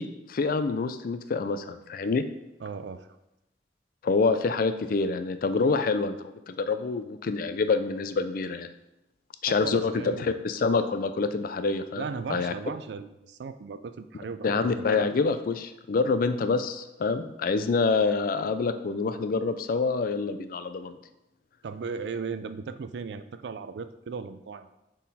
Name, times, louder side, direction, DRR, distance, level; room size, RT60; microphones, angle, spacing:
voice 1, 0.0-2.2 4.0-8.7 9.4-12.0 12.3-12.5 14.4-21.0, left 4 dB, 50° left, 10 dB, 0.4 m, -26 dB
voice 2, 2.6-3.1 9.5-10.3 12.0-15.1 21.6-24.7, right 5 dB, 65° right, 11 dB, 0.4 m, -36 dB
6.3 x 3.8 x 4.1 m, 0.92 s
head